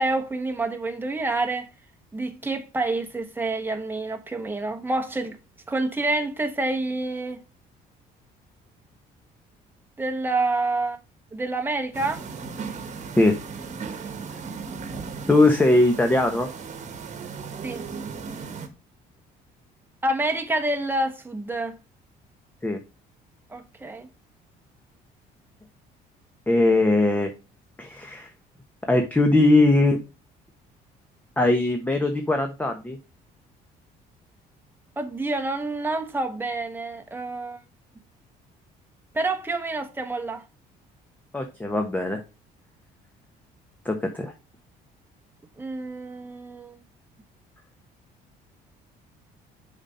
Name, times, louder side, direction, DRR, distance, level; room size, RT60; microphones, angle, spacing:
voice 1, 0.0-1.7 2.1-5.4 5.7-7.4 10.0-11.0 11.3-12.2 17.6-17.9 20.0-21.8 23.5-24.1 35.0-37.6 39.1-40.4 45.6-46.8, right 2 dB, 10° right, 1.2 m, -28 dB
sound 1, 11.9-18.7, right 5 dB, 45° right, 1.3 m, -36 dB
voice 2, 15.3-16.5 22.6-22.8 26.5-27.3 27.8-28.3 28.9-30.0 31.4-33.0 41.3-42.2 43.8-44.3, left 2 dB, 10° left, 1.1 m, -20 dB
6.8 x 4.3 x 5.5 m
cardioid pair, 110°, 17 cm